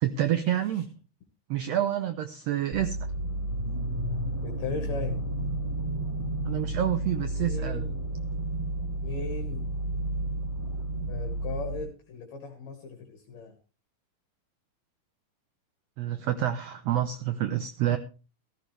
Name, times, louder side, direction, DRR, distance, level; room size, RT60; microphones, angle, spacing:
voice 1, 0.0-0.9 1.5-3.0 6.5-7.9 16.0-18.0, right 11 dB, 80° right, 10 dB, 1.5 m, -28 dB
sound 1, 2.7-11.8, right 1 dB, 10° right, 3.9 m, -31 dB
voice 2, 4.4-5.2 7.4-8.0 9.0-9.7 11.1-13.5, left 4 dB, 60° left, 3 dB, 2.8 m, -37 dB
15.5 x 14.0 x 3.3 m, 0.33 s
omnidirectional pair, 3.8 m